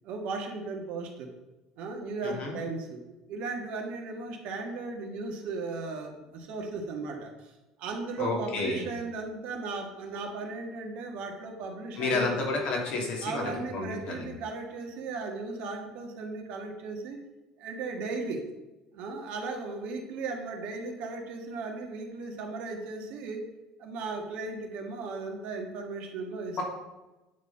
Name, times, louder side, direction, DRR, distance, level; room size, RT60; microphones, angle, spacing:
voice 1, 0.0-1.3 1.8-3.0 3.3-7.5 7.8-12.4 13.2-17.2 17.6-18.5 18.9-23.4 23.8-26.6, right 3 dB, 70° right, 2 dB, 1.6 m, -36 dB
voice 2, 8.2-8.8 12.0-14.2, left 3 dB, 60° left, -1 dB, 2.8 m, -30 dB
9.3 x 4.2 x 5.7 m, 1.1 s
hypercardioid pair, 75°, 2 cm